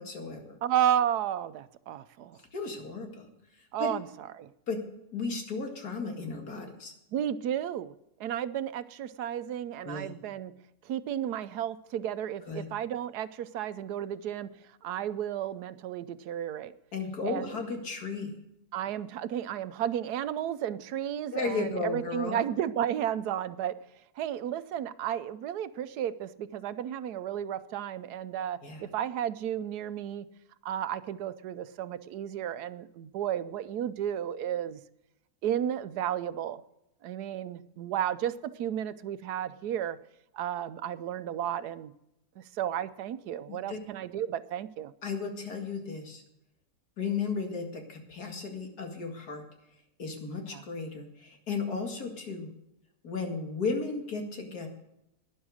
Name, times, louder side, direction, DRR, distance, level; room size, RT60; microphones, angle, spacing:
voice 1, 0.0-0.6 2.5-3.3 3.6-3.9 4.7-4.8 5.1-6.9 9.8-10.1 12.5-12.7 16.9-18.3 21.3-22.4 28.6-28.8 43.5-43.8 45.0-46.2 47.0-49.4 50.0-52.5 53.0-54.7, left 4 dB, 80° left, 3 dB, 2.6 m, -34 dB
voice 2, 0.6-2.4 3.7-4.1 4.4-4.5 7.1-7.9 8.2-10.5 10.8-14.5 14.8-16.7 17.2-17.6 18.7-23.7 24.2-30.3 30.6-34.8 35.4-36.6 37.0-40.0 40.3-41.9 42.4-44.9 50.5-50.6, right 10 dB, 90° right, 14 dB, 1.2 m, -33 dB
12.0 x 10.0 x 6.3 m, 0.84 s
omnidirectional pair, 1.6 m